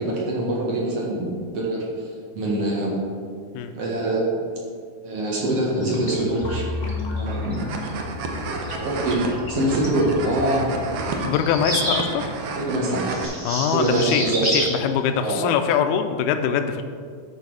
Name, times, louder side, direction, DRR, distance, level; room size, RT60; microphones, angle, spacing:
voice 1, 0.0-1.9 2.4-3.0 3.8-4.4 5.0-6.6 7.1-7.6 8.8-10.8 12.6-13.2 13.7-14.4 15.2-15.4, right 1 dB, 55° right, -4 dB, 2.4 m, -24 dB
sound 1, 5.8-11.6, left 3 dB, 60° left, 0.4 m, -33 dB
sound 2, 7.3-13.2, right 4 dB, 70° right, 1.5 m, -31 dB
voice 2, 11.2-12.2 13.4-16.8, left 8 dB, 85° left, 8 dB, 2.0 m, -23 dB
sound 3, 11.4-12.1 13.1-14.7, right 1 dB, 35° right, 0.6 m, -27 dB
12.0 x 4.9 x 4.7 m, 2.1 s
omnidirectional pair, 3.6 m